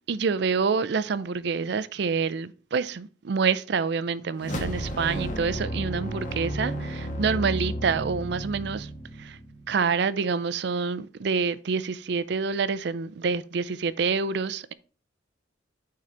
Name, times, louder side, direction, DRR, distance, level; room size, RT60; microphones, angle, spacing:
voice 1, 0.1-8.9 9.2-9.4 9.7-14.7, right 5 dB, 60° right, 0.4 m, -27 dB
sound 1, 4.4-9.8, equal, 45° left, 1.4 m, -33 dB
9.2 x 3.9 x 4.2 m
head